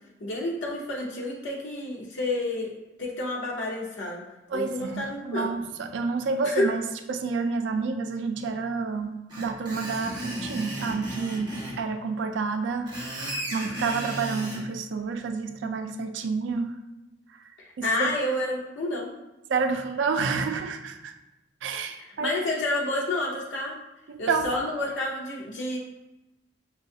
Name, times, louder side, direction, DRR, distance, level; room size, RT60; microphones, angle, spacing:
voice 1, 0.2-2.7 3.0-4.2 4.5-5.5 6.4-6.7 17.8-19.1 22.2-23.8 24.2-25.8, left 2 dB, 80° left, -3 dB, 0.6 m, -29 dB
voice 2, 4.5-6.8 7.1-16.7 17.8-18.1 19.5-21.1 21.6-22.3 24.1-24.5, right 4 dB, 85° right, 6 dB, 0.4 m, -29 dB
Screech, 9.3-11.8 12.7-14.6, right 1 dB, 25° right, 1.4 m, -35 dB
6.3 x 2.3 x 2.7 m, 1.0 s
head